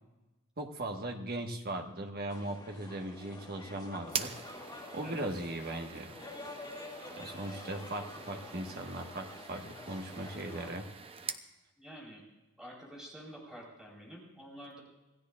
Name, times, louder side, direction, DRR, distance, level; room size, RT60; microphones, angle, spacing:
voice 1, 0.6-4.3 4.9-6.1 7.2-10.9, right 1 dB, 45° right, 3 dB, 1.5 m, -38 dB
sound 1, 2.3-10.7, left 2 dB, 20° left, 2.4 m, -48 dB
sound 2, 4.1-11.5, right 6 dB, 25° right, 0.7 m, -44 dB
voice 2, 11.8-12.2 12.6-14.8, equal, 5° right, -4 dB, 4.5 m, -48 dB
26.5 x 16.5 x 2.5 m, 1.1 s
head